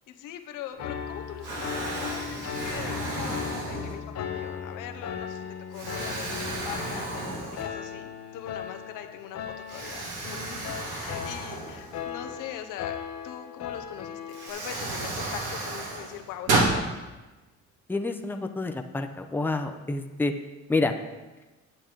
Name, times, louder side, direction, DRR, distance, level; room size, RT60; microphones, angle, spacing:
voice 1, 0.1-5.4 5.7-17.0, left 10 dB, 85° left, 7 dB, 0.9 m, -42 dB
Explosion, 0.7-1.1 1.4-4.2 4.8-5.0 5.7-8.0 8.3-8.4 9.7-12.3 13.7-13.8 14.3-16.8, right 2 dB, 85° right, 2.3 m, -32 dB
Piano, 0.8-14.5, left 8 dB, 60° left, 0.9 m, -37 dB
voice 2, 17.9-20.3 20.7-20.9, left 3 dB, 5° left, 5 dB, 0.6 m, -28 dB
8.5 x 8.5 x 3.9 m, 1.2 s
cardioid pair, 110°, 31 cm